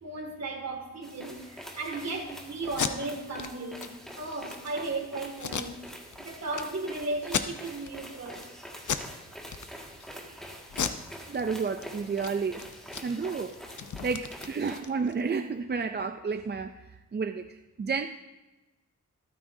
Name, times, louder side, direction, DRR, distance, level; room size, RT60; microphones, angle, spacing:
voice 1, 0.0-5.7 6.2-8.5, right 2 dB, 55° right, 2 dB, 2.2 m, -35 dB
sound 1, 1.0-14.8, equal, ahead, 1.9 m, -45 dB
Packing tape duct tape, 2.6-2.9 3.4-3.5 3.8-3.9 4.3-4.7 5.4-6.2 6.5-6.6 7.2-7.9 8.3-8.5 8.8-9.1 9.4-10.1 10.7-11.8 12.1-12.3 12.6-15.2, left 7 dB, 70° left, 0.8 m, -34 dB
voice 2, 11.3-12.7 13.0-13.6 14.0-16.8 17.1-18.1, right 5 dB, 35° right, 7 dB, 0.4 m, -31 dB
25.0 x 9.5 x 2.7 m, 1.1 s
wide cardioid pair, 180°, 31 cm